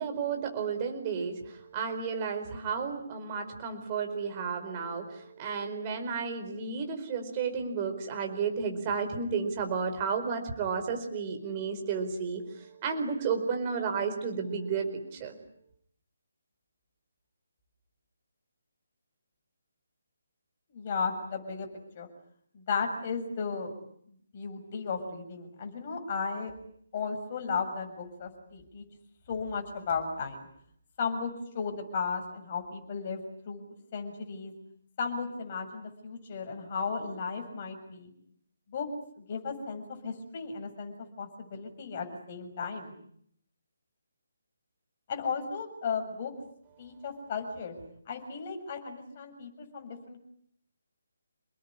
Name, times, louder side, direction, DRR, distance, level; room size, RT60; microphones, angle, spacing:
voice 1, 0.0-15.3, right 5 dB, 15° right, 4 dB, 4.7 m, -32 dB
voice 2, 20.7-21.7 21.9-22.1 22.5-23.7 24.1-26.5 26.9-28.8 29.3-30.5 31.0-33.2 33.5-34.5 35.0-38.1 38.7-38.9 39.2-42.9 45.1-46.3 46.8-47.7 48.1-50.2, left 5 dB, 25° left, 4 dB, 7.0 m, -35 dB
29.5 x 20.0 x 10.0 m, 0.66 s
hypercardioid pair, 175°, 0 cm